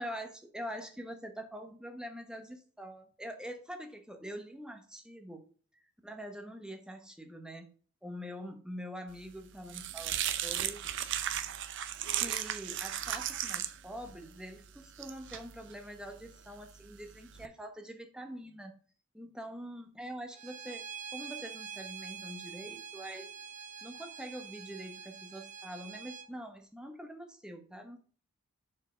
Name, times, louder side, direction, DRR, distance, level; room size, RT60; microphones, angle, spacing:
voice 1, 0.0-5.5 6.0-7.7 8.0-10.8 12.1-18.8 19.1-23.3 23.8-28.0, equal, 5° right, 5 dB, 1.0 m, -44 dB
sound 1, 9.2-17.5, right 11 dB, 55° right, 0.6 m, -37 dB
Bowed string instrument, 20.3-26.3, right 7 dB, 35° right, 0.9 m, -45 dB
7.1 x 4.6 x 4.9 m, 0.42 s
head